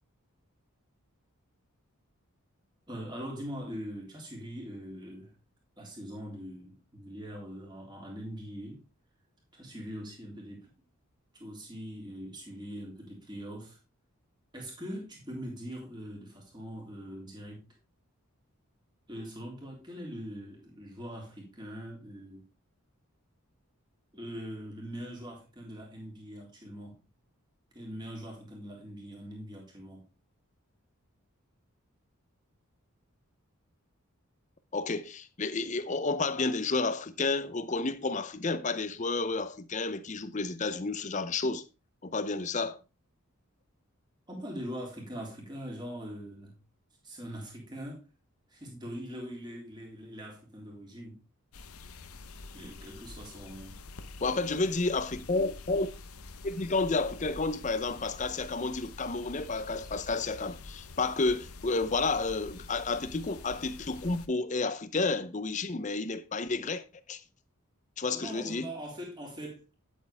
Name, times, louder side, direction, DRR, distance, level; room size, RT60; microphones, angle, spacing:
voice 1, 2.9-5.3 5.8-8.8 9.5-10.7 11.3-13.8 14.5-17.7 19.1-22.5 24.1-27.0 27.7-30.1 44.3-46.6 47.0-48.0 48.5-51.2 52.5-53.8 68.1-69.7, equal, 20° right, 3.3 m, -42 dB
voice 2, 34.7-41.6 42.0-42.8 54.2-55.9 56.4-66.8 67.1-67.2 68.0-68.7, left 3 dB, 35° left, 0.7 m, -31 dB
sound 1, 51.5-64.3, left 3 dB, 85° left, 0.9 m, -47 dB
9.3 x 8.5 x 3.4 m
head